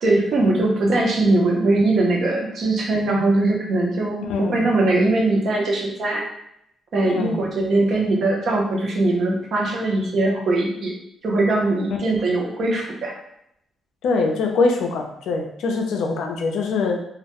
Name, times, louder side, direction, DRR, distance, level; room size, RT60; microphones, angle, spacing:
voice 1, 0.0-6.3 6.9-10.9 11.2-13.1, right 2 dB, 45° right, -1 dB, 0.5 m, -21 dB
voice 2, 4.3-4.6 7.1-7.4 14.0-17.0, left 3 dB, 75° left, 2 dB, 0.4 m, -23 dB
2.2 x 2.1 x 2.8 m, 0.76 s
cardioid pair, 170°, 0 cm